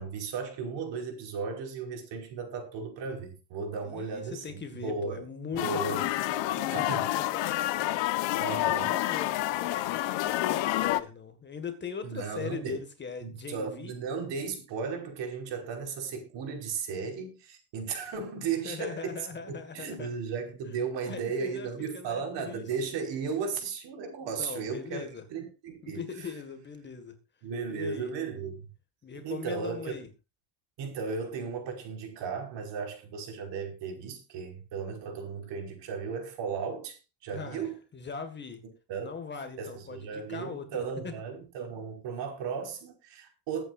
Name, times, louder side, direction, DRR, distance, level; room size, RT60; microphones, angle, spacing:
voice 1, 0.0-5.2 5.5-6.1 6.7-7.1 8.4-8.9 12.0-12.8 13.2-19.2 19.5-26.3 27.4-28.7 29.2-29.9 30.8-37.8 38.9-39.1 39.6-43.6, right 5 dB, 70° right, 5.3 m, -35 dB
voice 2, 3.8-7.6 8.6-13.9 18.6-20.1 21.1-22.6 24.3-25.2 25.8-27.1 27.7-28.1 29.0-30.1 37.3-38.6 39.0-41.1, left 5 dB, 25° left, 1.8 m, -40 dB
sound 1, 5.6-11.0, left 15 dB, 80° left, 1.2 m, -29 dB
22.0 x 9.0 x 2.5 m
cardioid pair, 165°, 44 cm